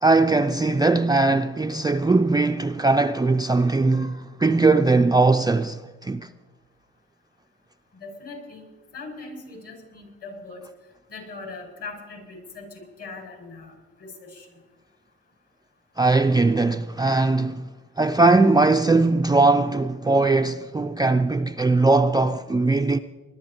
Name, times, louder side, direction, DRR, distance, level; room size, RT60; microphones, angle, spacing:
voice 1, 0.0-6.3 16.0-17.7 18.0-23.0, right 3 dB, 15° right, 0.4 m, -20 dB
voice 2, 7.9-8.6 8.9-10.6 11.1-13.7 14.0-14.5, left 3 dB, 55° left, 6.1 m, -40 dB
20.5 x 12.0 x 4.3 m
cardioid pair, 90°, 30 cm